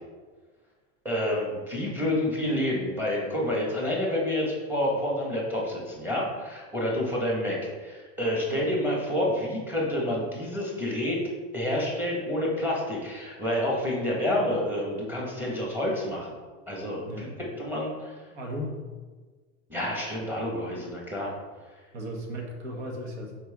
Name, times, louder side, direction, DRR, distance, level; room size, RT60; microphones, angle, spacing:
voice 1, 1.0-11.2 11.5-16.3 16.7-18.1 19.7-21.3, left 1 dB, 5° right, -3 dB, 1.7 m, -28 dB
voice 2, 18.3-18.8 21.9-23.3, equal, 85° right, 0 dB, 1.6 m, -36 dB
6.0 x 4.8 x 3.7 m, 1.4 s
supercardioid pair, 140°, 33 cm